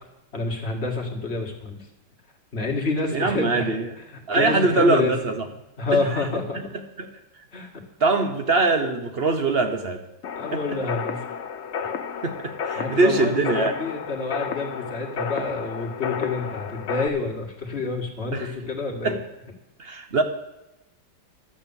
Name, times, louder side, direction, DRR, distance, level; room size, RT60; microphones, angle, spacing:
voice 1, 0.3-1.8 2.5-3.7 4.1-5.1 5.8-6.6 7.5-7.7 10.4-11.2 12.8-19.2, left 3 dB, 35° left, 1 dB, 2.1 m, -28 dB
voice 2, 3.1-3.9 4.3-5.5 5.9-6.2 7.0-7.1 8.0-10.0 10.5-10.8 12.2-13.7 18.3-18.5 19.0-19.2 19.8-20.2, right 3 dB, 45° right, 7 dB, 0.8 m, -22 dB
sound 1, 10.2-17.1, left 7 dB, 55° left, 0.8 m, -32 dB
12.5 x 8.2 x 7.1 m, 0.94 s
omnidirectional pair, 2.1 m